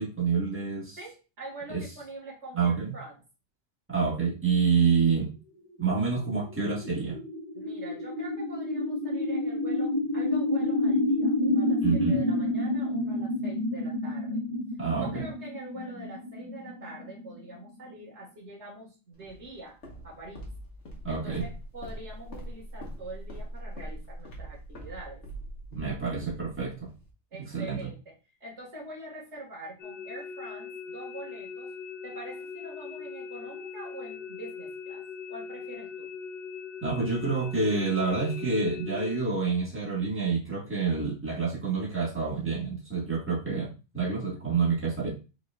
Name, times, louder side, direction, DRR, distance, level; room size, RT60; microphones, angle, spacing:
voice 1, 0.0-1.0 1.7-1.8 2.5-3.0 3.9-5.3 5.8-7.2 11.8-12.2 14.8-15.2 21.0-21.5 25.7-26.9 27.4-27.9 36.8-45.1, right 5 dB, 10° right, -5 dB, 1.6 m, -28 dB
voice 2, 1.0-3.2 7.5-14.4 15.0-19.8 20.0-20.4 21.1-25.2 27.3-28.1 28.4-31.7 32.0-36.1, right 2 dB, 80° right, -3 dB, 2.1 m, -44 dB
sound 1, 5.8-17.9, left 1 dB, 45° right, 1.1 m, -29 dB
Walk footsteps, 19.2-27.1, equal, 85° left, 1.5 m, -42 dB
sound 2, 29.8-39.2, left 5 dB, 50° left, 0.7 m, -40 dB
4.9 x 3.9 x 2.4 m, 0.31 s
omnidirectional pair, 1.2 m